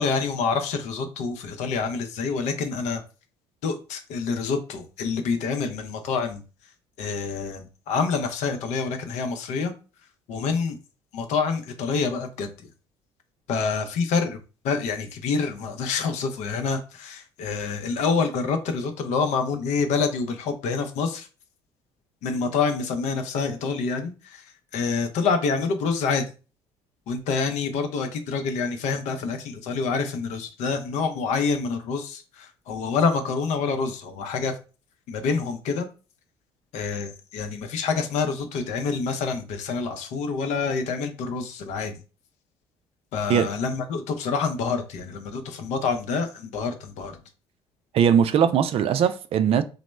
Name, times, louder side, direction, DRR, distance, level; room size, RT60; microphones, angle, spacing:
voice 1, 0.0-3.0 3.6-6.4 7.0-9.7 10.3-10.8 11.1-12.5 13.5-14.4 14.6-21.3 22.2-24.4 24.7-26.2 27.1-34.6 35.1-35.9 36.7-41.9 43.1-47.2, left 5 dB, 60° left, 0.6 m, -27 dB
voice 2, 47.9-49.6, right 8 dB, 45° right, 0.4 m, -20 dB
2.9 x 2.1 x 3.2 m
figure-of-eight pair, 55°, 14 cm